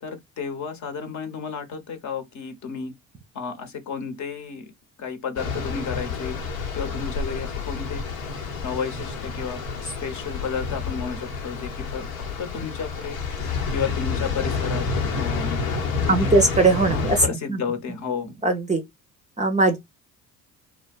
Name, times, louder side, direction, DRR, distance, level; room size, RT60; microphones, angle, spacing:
voice 1, 0.0-2.9 3.3-4.7 5.0-6.4 6.7-8.1 8.6-12.0 12.4-13.2 13.7-14.8 15.1-15.7 16.0-16.4 16.9-18.3, left 6 dB, 45° left, 0.8 m, -32 dB
sound 1, 5.4-17.3, left 4 dB, 75° left, 0.8 m, -29 dB
voice 2, 16.1-17.6 18.4-18.8 19.4-19.8, right 3 dB, 20° right, 0.5 m, -20 dB
2.5 x 2.2 x 2.2 m
hypercardioid pair, 55°, 41 cm